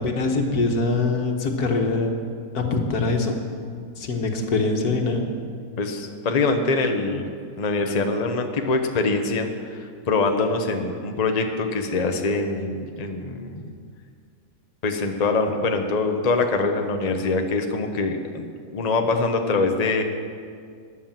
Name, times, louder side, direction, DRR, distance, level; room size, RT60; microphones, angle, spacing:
voice 1, 0.0-2.1 2.5-3.3 4.0-5.3, left 3 dB, 80° left, 3 dB, 1.9 m, -23 dB
voice 2, 5.8-13.7 14.8-20.0, left 3 dB, 30° left, 5 dB, 0.9 m, -24 dB
13.0 x 9.8 x 7.4 m, 2.2 s
omnidirectional pair, 1.6 m